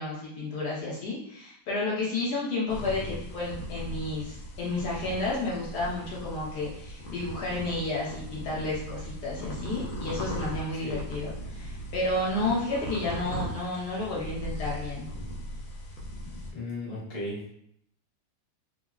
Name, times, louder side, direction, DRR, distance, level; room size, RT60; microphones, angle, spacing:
voice 1, 0.0-15.1, left 2 dB, 65° left, -6 dB, 1.2 m, -31 dB
sound 1, 2.7-16.5, equal, 80° left, 1.3 m, -38 dB
voice 2, 16.5-17.4, left 2 dB, 30° left, -8 dB, 0.5 m, -35 dB
3.4 x 2.1 x 2.4 m, 0.73 s
omnidirectional pair, 2.1 m